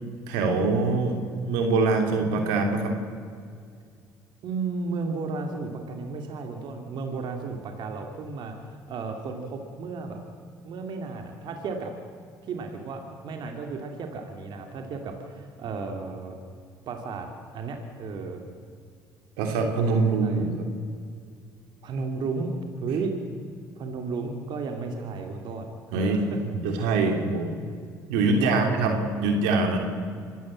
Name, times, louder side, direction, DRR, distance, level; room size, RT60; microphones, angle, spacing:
voice 1, 0.3-1.2 1.4-2.9 19.4-20.7 25.9-27.6 28.1-29.8, right 3 dB, 85° right, 4 dB, 3.1 m, -24 dB
voice 2, 4.4-10.2 10.6-11.9 12.4-16.4 16.9-17.3 17.5-18.4 20.0-20.5 21.8-22.5 22.8-23.1 23.8-26.4 27.0-27.3 28.3-29.0, right 4 dB, 60° right, 4 dB, 2.6 m, -34 dB
25.5 x 14.0 x 7.6 m, 2.2 s
supercardioid pair, 70°, 8 cm